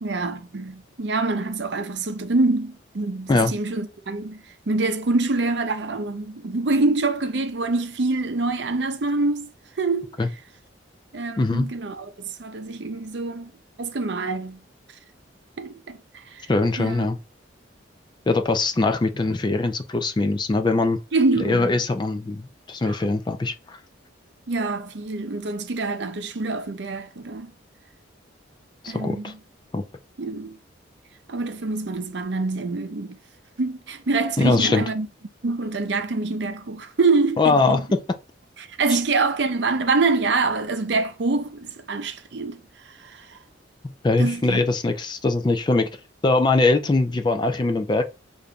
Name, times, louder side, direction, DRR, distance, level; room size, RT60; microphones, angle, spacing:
voice 1, 0.0-10.2 11.1-13.5 13.8-14.6 15.6-16.5 16.8-17.1 21.1-21.7 22.8-23.0 24.5-27.5 28.9-29.4 30.2-30.6 31.3-33.2 33.6-35.1 35.4-37.8 38.6-43.4 44.2-44.6, right 3 dB, 60° right, 0.6 m, -25 dB
voice 2, 11.4-11.7 16.5-17.2 18.3-21.0 21.4-23.8 28.8-29.3 29.7-29.8 34.4-34.8 37.4-38.0 44.0-45.9 46.2-48.0, left 3 dB, 25° left, 0.3 m, -21 dB
6.6 x 2.6 x 2.3 m
head